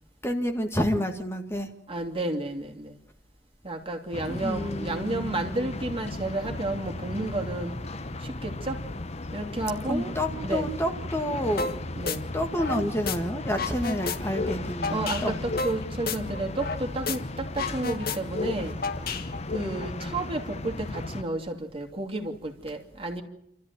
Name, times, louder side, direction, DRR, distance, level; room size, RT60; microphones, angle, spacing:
voice 1, 0.2-1.7 4.3-5.8 9.9-11.7 12.3-15.4, equal, 15° left, 4 dB, 1.8 m, -29 dB
voice 2, 1.9-3.0 3.6-7.7 8.2-8.8 9.3-10.1 10.4-10.7 11.9-12.3 14.9-18.7 19.5-23.2, right 2 dB, 30° right, 4 dB, 2.8 m, -31 dB
sound 1, 4.1-21.2, left 2 dB, 35° left, 1.0 m, -36 dB
sound 2, 11.6-11.8 12.1-13.2 13.5-16.8 17.1-17.2 17.5-19.6, left 4 dB, 55° left, 1.6 m, -31 dB
28.5 x 14.0 x 9.3 m, 0.76 s
head